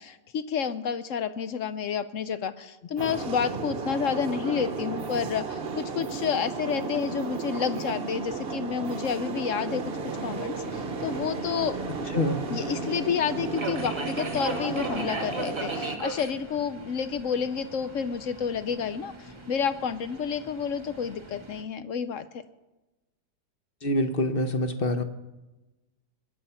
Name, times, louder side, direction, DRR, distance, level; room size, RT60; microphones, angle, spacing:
voice 1, 0.0-9.8 10.2-11.8 12.5-22.3, left 7 dB, 60° left, 12 dB, 0.9 m, -30 dB
sound 1, 3.0-16.0, right 4 dB, 45° right, 0.9 m, -34 dB
Subway metro underground, 10.1-21.6, right 2 dB, 20° right, 1.2 m, -39 dB
voice 2, 23.8-25.0, left 1 dB, 40° left, 8 dB, 1.0 m, -25 dB
21.5 x 8.8 x 5.7 m, 1.1 s
omnidirectional pair, 1.8 m